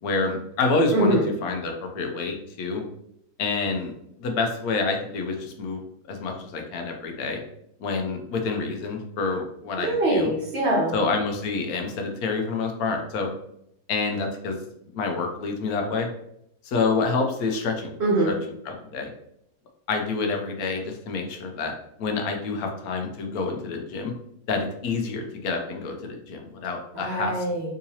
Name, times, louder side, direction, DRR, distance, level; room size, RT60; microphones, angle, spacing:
voice 1, 0.0-2.8 3.4-5.8 6.1-7.4 7.8-10.3 10.9-13.3 13.9-14.6 14.9-16.1 16.6-17.9 18.3-18.4 18.7-19.1 19.9-21.7 22.0-24.1 24.5-27.3, left 4 dB, 80° left, 3 dB, 1.1 m, -27 dB
voice 2, 0.9-1.3 9.8-11.0 18.0-18.4 26.9-27.7, right 1 dB, 50° right, -3 dB, 1.1 m, -23 dB
3.7 x 2.8 x 2.7 m, 0.74 s
omnidirectional pair, 1.6 m